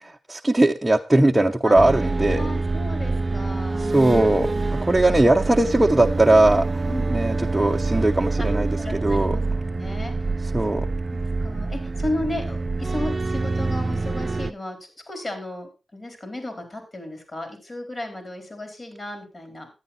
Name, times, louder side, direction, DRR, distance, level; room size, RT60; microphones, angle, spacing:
voice 1, 0.3-2.4 3.9-4.5 4.8-6.7 7.1-9.4 10.5-10.9, right 2 dB, 15° right, 2 dB, 0.7 m, -19 dB
sound 1, 1.7-14.5, right 3 dB, 40° right, 0.4 m, -26 dB
voice 2, 2.3-4.1 6.9-7.1 8.4-8.5 8.8-10.1 11.1-19.7, left 1 dB, 45° left, 6 dB, 4.3 m, -34 dB
10.5 x 9.1 x 4.3 m, 0.30 s
cardioid pair, 50°, 0 cm